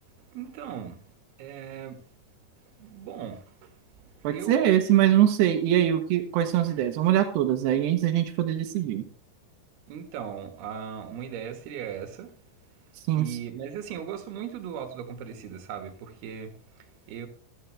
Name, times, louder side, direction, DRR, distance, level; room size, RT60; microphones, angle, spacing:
voice 1, 0.2-1.1 1.4-2.0 2.6-4.9 6.7-6.8 9.9-12.4 13.1-17.3, right 8 dB, 75° right, 3.5 m, -38 dB
voice 2, 4.2-9.0 13.1-13.3, right 11 dB, 90° right, 3.2 m, -23 dB
13.5 x 12.5 x 3.4 m
omnidirectional pair, 4.7 m